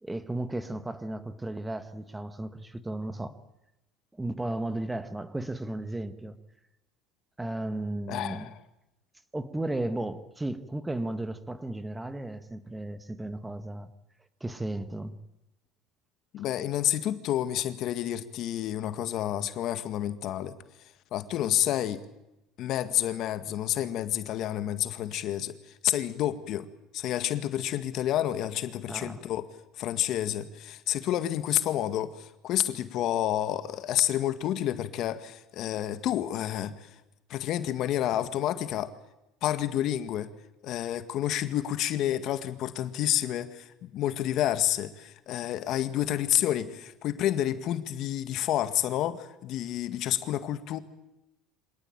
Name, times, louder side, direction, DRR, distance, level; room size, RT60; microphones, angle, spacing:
voice 1, 0.0-3.4 4.1-6.4 7.4-8.5 9.3-13.9 14.4-15.2 28.9-29.3, right 1 dB, 10° right, 1.5 m, -34 dB
voice 2, 8.1-8.6 16.3-22.1 22.6-29.5 29.7-37.0 37.3-38.9 39.4-40.3 40.6-50.8, left 12 dB, 55° left, 1.9 m, -29 dB
25.5 x 19.0 x 8.9 m
supercardioid pair, 115°, 0 cm